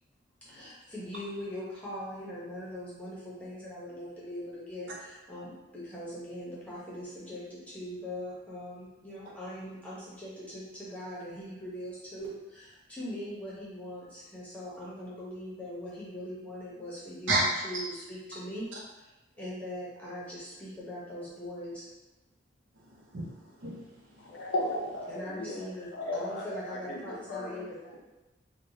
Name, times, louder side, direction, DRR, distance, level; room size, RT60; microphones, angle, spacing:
voice 1, 0.5-18.7 19.4-21.9 25.1-28.0, equal, 10° left, -8 dB, 0.8 m, -41 dB
voice 2, 22.8-24.5, right 2 dB, 90° right, -3 dB, 0.7 m, -33 dB
voice 3, 24.2-27.6 27.9-28.0, left 1 dB, 70° left, 0 dB, 0.5 m, -36 dB
3.2 x 2.2 x 2.7 m, 1.0 s
head